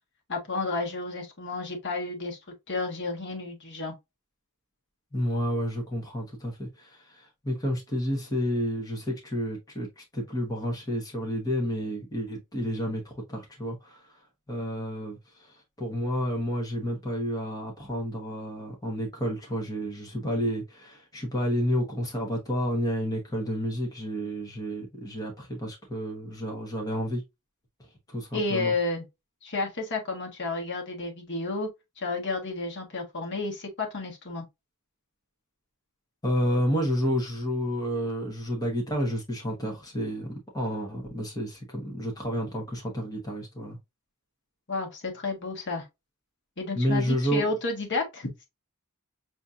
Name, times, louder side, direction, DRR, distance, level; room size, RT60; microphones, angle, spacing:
voice 1, 0.3-2.4 2.7-3.9 28.3-29.0 29.4-31.7 32.0-34.4 44.7-45.9 46.6-48.3, left 3 dB, 55° left, 1.3 m, -31 dB
voice 2, 5.1-14.2 14.5-27.2 28.1-28.7 36.2-43.8 46.7-47.5, equal, 15° left, 1.0 m, -30 dB
6.1 x 2.7 x 2.4 m
head